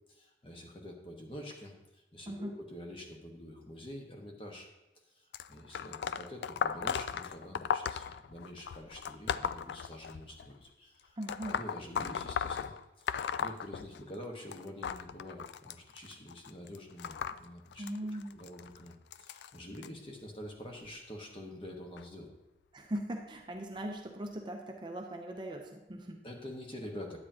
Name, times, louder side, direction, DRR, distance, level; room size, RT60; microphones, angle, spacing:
voice 1, 0.1-4.7 5.1-11.2 11.4-17.9 18.3-22.3 26.2-27.2, left 1 dB, 30° left, 1 dB, 1.2 m, -47 dB
sound 1, 5.3-10.5 11.2-14.2 14.5-19.9 20.7-20.9 22.0-22.1 23.0-23.1 23.8-23.9, left 7 dB, 75° left, 0.3 m, -37 dB
voice 2, 11.2-11.6 17.8-18.3 22.7-26.2, right 1 dB, 25° right, 2 dB, 0.6 m, -39 dB
9.7 x 8.8 x 2.8 m, 1.0 s
head